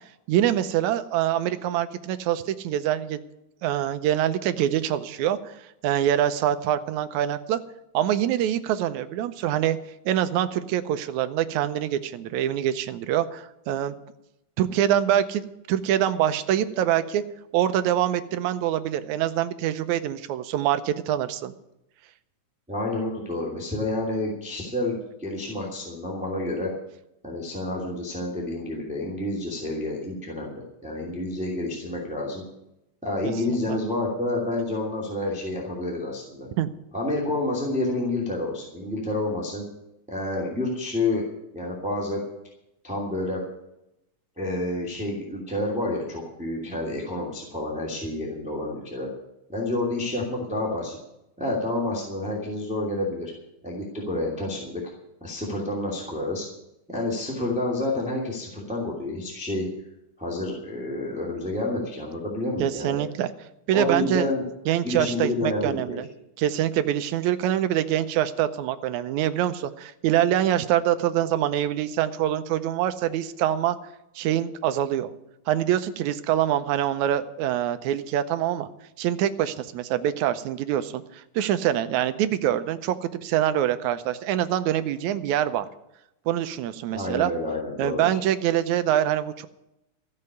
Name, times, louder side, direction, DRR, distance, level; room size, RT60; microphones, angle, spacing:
voice 1, 0.3-3.2 3.6-5.5 5.8-7.6 7.9-9.8 10.1-13.9 14.6-15.4 15.7-17.2 17.5-21.5 33.2-33.3 33.7-33.8 36.6-36.7 62.6-63.3 63.7-64.3 64.7-66.1 66.4-73.8 74.2-75.1 75.5-78.7 79.0-85.7 86.3-87.3 87.8-89.5, right 11 dB, 80° right, 11 dB, 2.0 m, -25 dB
voice 2, 22.7-26.7 27.2-32.4 33.0-36.5 36.9-39.6 40.1-41.2 41.5-42.2 42.8-43.4 44.4-49.1 49.5-51.0 51.4-53.3 53.6-54.8 55.2-56.5 56.9-59.7 60.2-63.0 63.7-64.4 64.8-66.0 86.9-88.0, left 2 dB, ahead, -3 dB, 2.3 m, -29 dB
14.0 x 6.6 x 9.6 m, 0.86 s
omnidirectional pair, 3.6 m